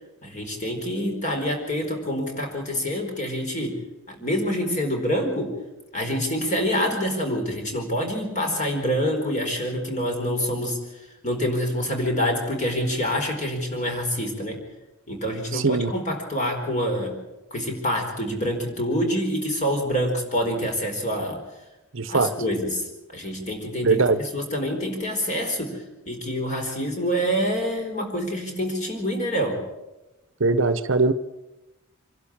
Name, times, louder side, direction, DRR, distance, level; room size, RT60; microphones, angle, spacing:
voice 1, 0.2-3.8 4.1-5.5 5.9-14.6 15.1-17.2 17.5-21.4 22.1-29.6, equal, 35° left, 3 dB, 4.5 m, -26 dB
voice 2, 15.5-15.9 21.9-22.3 23.8-24.2 30.4-31.1, right 3 dB, 60° right, 12 dB, 0.9 m, -21 dB
26.0 x 12.0 x 8.8 m, 1.0 s
head